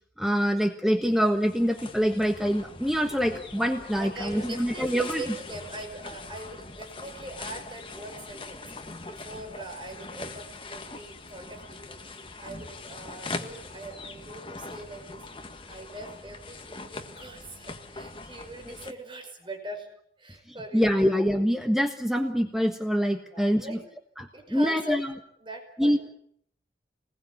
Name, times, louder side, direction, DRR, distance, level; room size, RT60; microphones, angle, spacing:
voice 1, 0.2-5.2 18.7-18.8 20.7-23.8 24.2-25.1 25.8-26.0, equal, ahead, 4 dB, 1.4 m, -25 dB
sound 1, 0.9-18.9, left 3 dB, 30° left, 1.7 m, -42 dB
voice 2, 4.0-19.9 20.2-21.1 23.3-23.8 24.3-25.0 25.4-25.9, right 2 dB, 25° right, 3 dB, 5.4 m, -42 dB
27.5 x 20.5 x 8.4 m, 0.67 s
head